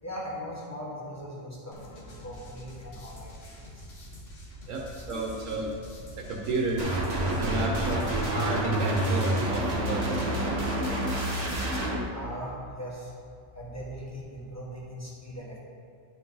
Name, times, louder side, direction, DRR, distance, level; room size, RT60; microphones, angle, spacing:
voice 1, 0.0-3.8 12.1-13.1 13.5-15.6, equal, 10° left, -6 dB, 1.6 m, -40 dB
sound 1, 1.7-9.5, equal, 65° left, 1.5 m, -46 dB
voice 2, 4.7-5.7 6.2-7.0 7.4-10.6, right 2 dB, 75° right, -1 dB, 1.2 m, -32 dB
sound 2, 6.8-12.0, right 1 dB, 35° right, 1.1 m, -28 dB
11.0 x 4.5 x 4.1 m, 2.4 s
omnidirectional pair, 1.4 m